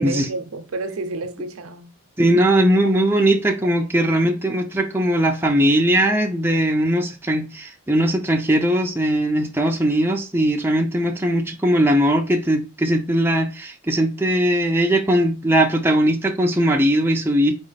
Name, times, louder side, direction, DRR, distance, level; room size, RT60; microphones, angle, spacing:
voice 1, 0.0-1.9 2.8-2.9 3.6-4.2, right 3 dB, 85° right, 0.6 m, -31 dB
voice 2, 2.2-17.5, right 1 dB, 10° right, 0.5 m, -19 dB
4.1 x 3.0 x 4.0 m
head